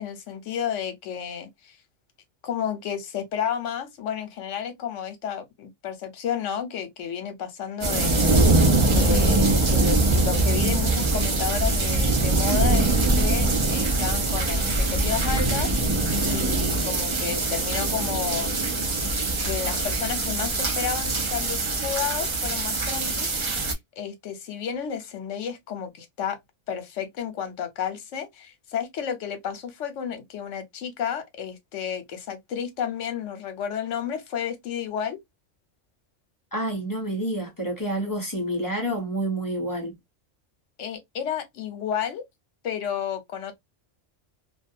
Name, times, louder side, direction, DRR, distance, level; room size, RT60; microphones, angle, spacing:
voice 1, 0.0-1.8 2.4-8.2 8.9-18.6 19.4-23.7 24.0-26.4 26.7-35.2 40.8-42.2 42.6-43.5, left 8 dB, 80° left, 1.0 m, -32 dB
sound 1, 7.8-23.7, right 2 dB, 40° right, 0.4 m, -23 dB
voice 2, 36.5-39.9, right 1 dB, 25° left, 0.5 m, -28 dB
2.3 x 2.2 x 2.6 m
omnidirectional pair, 1.3 m